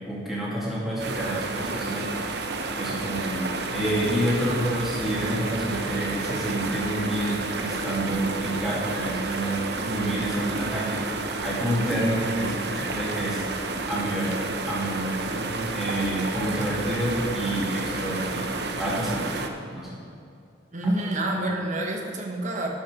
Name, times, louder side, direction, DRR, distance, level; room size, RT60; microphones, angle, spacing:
voice 1, 0.1-2.1 2.8-13.4 13.9-14.4 14.7-19.4 19.7-19.9, right 1 dB, ahead, -7 dB, 2.4 m, -28 dB
sound 1, 1.0-19.5, right 3 dB, 60° right, 0.8 m, -31 dB
voice 2, 20.7-22.7, right 1 dB, 40° right, 0 dB, 1.3 m, -27 dB
12.0 x 6.0 x 5.1 m, 2.5 s
head